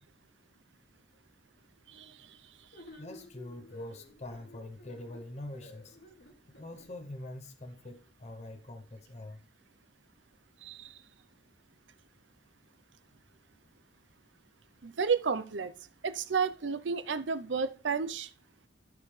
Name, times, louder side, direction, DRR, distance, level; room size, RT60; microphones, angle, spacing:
voice 1, 1.9-2.4 10.6-11.0 14.8-15.7 16.0-18.3, right 5 dB, 75° right, 0.6 m, -32 dB
sound 1, 2.7-6.9, equal, 60° left, 2.5 m, -51 dB
voice 2, 3.0-6.0 6.6-9.4, left 2 dB, 35° left, 0.8 m, -44 dB
12.5 x 5.5 x 3.2 m
head